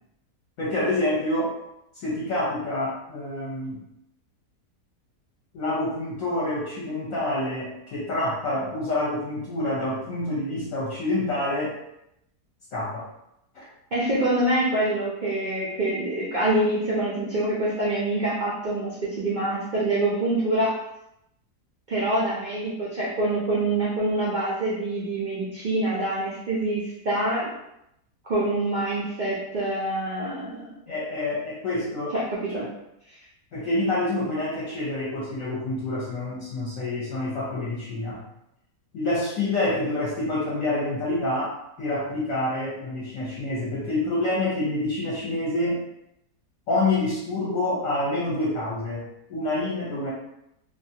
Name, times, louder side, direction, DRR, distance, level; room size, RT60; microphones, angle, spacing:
voice 1, 0.6-1.5 1.9-3.8 5.5-11.8 12.7-13.1 13.5-13.6 30.9-32.2 32.6-32.7 33.5-38.2 38.9-45.8 46.7-50.1, left 2 dB, 65° left, -7 dB, 1.0 m, -27 dB
voice 2, 13.9-20.7 21.9-27.5 28.2-30.7 32.1-32.2 32.5-32.6, right 1 dB, 85° right, -8 dB, 0.4 m, -25 dB
2.7 x 2.4 x 2.7 m, 0.83 s
omnidirectional pair, 1.7 m